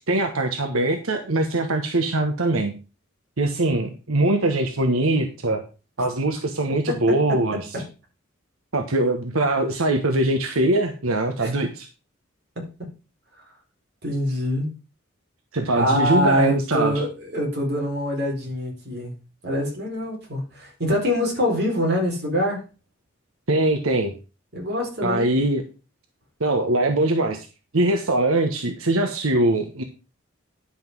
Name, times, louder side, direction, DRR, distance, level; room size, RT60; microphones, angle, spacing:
voice 1, 0.1-2.8 3.4-5.6 6.0-7.7 8.7-11.9 15.5-16.9 23.5-24.1 25.0-25.6 26.4-27.5 27.7-29.8, right 2 dB, 85° right, 6 dB, 1.2 m, -22 dB
voice 2, 12.6-12.9 14.0-14.7 15.7-19.1 19.4-22.6 24.5-25.3, equal, 50° right, 0 dB, 4.2 m, -24 dB
10.5 x 5.7 x 6.0 m, 0.32 s
head